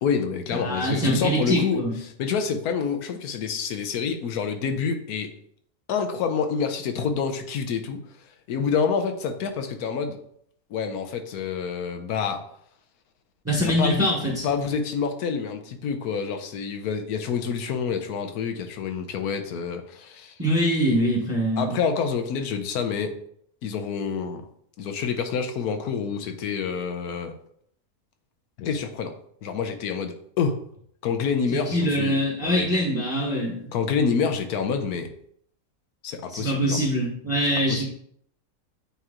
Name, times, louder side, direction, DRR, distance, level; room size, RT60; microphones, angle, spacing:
voice 1, 0.0-1.8 2.2-5.3 5.9-8.0 8.5-10.2 10.7-12.4 13.6-14.1 14.4-20.3 21.6-23.1 23.6-24.4 24.8-27.3 28.6-29.2 29.4-30.6 31.0-32.7 33.7-35.1 36.0-36.8 37.7-37.9, left 6 dB, 90° left, 6 dB, 1.2 m, -27 dB
voice 2, 0.5-1.9 13.4-14.5 20.4-21.8 31.5-33.7 36.3-37.9, equal, 10° right, -3 dB, 1.1 m, -24 dB
8.8 x 3.0 x 3.7 m, 0.67 s
omnidirectional pair, 1.6 m